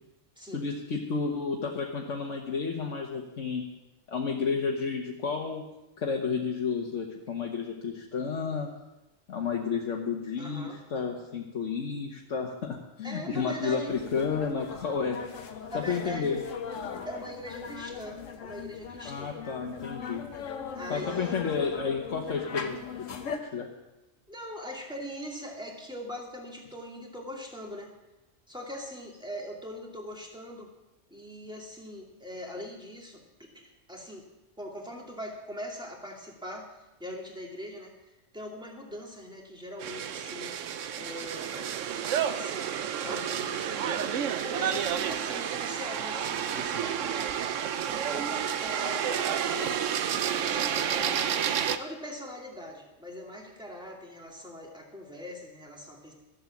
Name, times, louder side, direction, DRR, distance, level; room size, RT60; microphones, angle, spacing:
voice 1, 0.5-3.6 4.1-5.6 6.0-8.7 9.3-15.2 15.7-16.4 19.0-20.2 20.9-23.2 23.5-23.7, left 5 dB, 70° left, 0 dB, 1.5 m, -31 dB
voice 2, 10.4-10.8 13.0-13.9 15.7-16.3 17.1-19.4 20.7-21.4 24.3-27.9 28.5-30.7 31.1-34.2 34.6-41.7 42.0-56.1, equal, 5° right, -1 dB, 2.3 m, -42 dB
sound 1, 13.9-23.4, left 6 dB, 90° left, 1.4 m, -39 dB
sound 2, 39.8-51.8, right 8 dB, 80° right, 1.0 m, -30 dB
13.5 x 7.7 x 7.2 m, 1.0 s
omnidirectional pair, 1.3 m